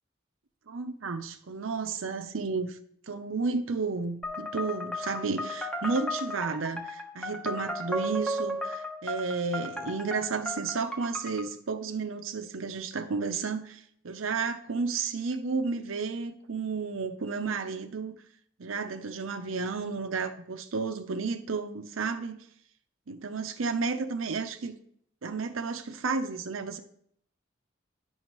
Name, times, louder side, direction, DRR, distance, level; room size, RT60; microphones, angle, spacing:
voice 1, 0.7-2.8 3.1-18.2 18.6-22.4 23.1-24.7 25.2-26.8, right 4 dB, 85° right, 7 dB, 0.7 m, -32 dB
sound 1, 4.2-11.4, equal, 5° left, 1.1 m, -35 dB
10.5 x 6.1 x 3.1 m, 0.65 s
head